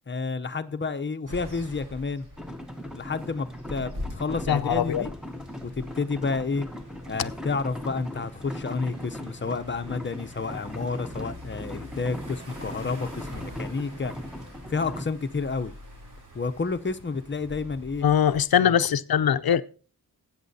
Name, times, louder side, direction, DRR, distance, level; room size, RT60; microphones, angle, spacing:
voice 1, 0.1-2.3 3.0-5.1 5.6-6.7 7.1-14.1 14.7-15.7 16.3-18.1 18.6-18.8, left 4 dB, 30° left, 0.7 m, -30 dB
sound 1, 1.3-18.4, left 1 dB, 50° right, 3.9 m, -44 dB
sound 2, 2.4-15.1, left 1 dB, ahead, 0.9 m, -39 dB
voice 2, 4.5-5.0 18.0-19.6, left 9 dB, 70° left, 0.6 m, -21 dB
19.0 x 8.7 x 2.7 m
wide cardioid pair, 115°, 38 cm